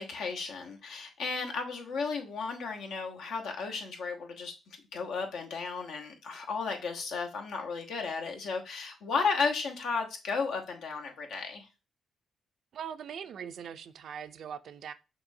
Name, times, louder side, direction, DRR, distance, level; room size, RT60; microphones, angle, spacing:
voice 1, 0.0-4.5 4.9-11.7, left 4 dB, 75° left, 1.0 m, -34 dB
voice 2, 12.7-14.9, right 8 dB, 65° right, 0.4 m, -41 dB
5.9 x 3.1 x 2.7 m
cardioid pair, 90°, 0 cm